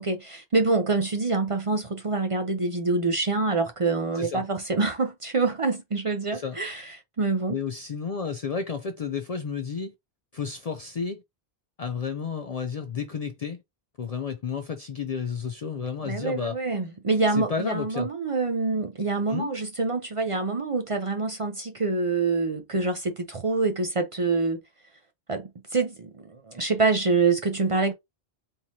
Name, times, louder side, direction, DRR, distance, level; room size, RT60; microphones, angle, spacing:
voice 1, 0.0-7.6 16.0-24.6 25.3-27.9, right 3 dB, 40° right, 0.5 m, -26 dB
voice 2, 4.1-4.5 6.3-6.6 7.5-9.9 10.3-11.2 11.8-13.6 14.0-16.6 17.3-18.1 19.3-19.5, left 6 dB, 50° left, 0.5 m, -31 dB
3.6 x 3.0 x 2.8 m
omnidirectional pair, 1.0 m